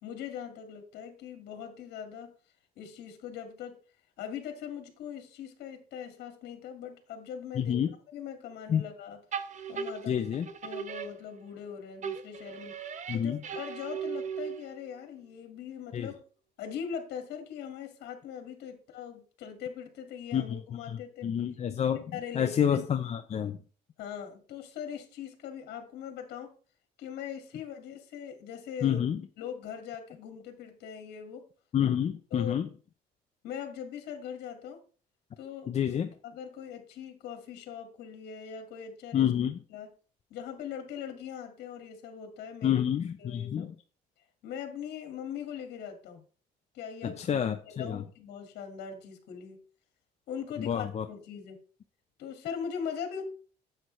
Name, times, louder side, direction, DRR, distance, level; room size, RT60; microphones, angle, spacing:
voice 1, 0.0-2.3 2.8-3.8 4.2-7.8 8.1-9.2 9.7-10.2 10.6-12.8 13.1-16.2 16.6-21.3 21.9-22.8 24.0-26.5 27.0-29.0 29.4-31.4 32.3-32.6 33.4-34.8 35.4-39.3 39.7-39.9 40.3-42.8 43.2-43.7 44.4-46.2 46.7-47.2 47.6-49.6 50.3-51.6 52.2-53.2, left 8 dB, 75° left, 5 dB, 2.1 m, -41 dB
voice 2, 7.6-7.9 8.7-8.8 10.1-10.5 13.1-13.4 15.9-16.1 20.3-22.0 22.3-23.6 28.8-29.2 31.7-32.7 35.7-36.1 39.1-39.6 42.6-43.7 47.0-48.0 50.6-51.0, left 9 dB, 40° left, 7 dB, 0.7 m, -28 dB
sound 1, 9.3-11.7 12.0-14.9, right 7 dB, 45° right, 1.0 m, -38 dB
10.5 x 8.1 x 3.2 m, 0.40 s
cardioid pair, 110°, 17 cm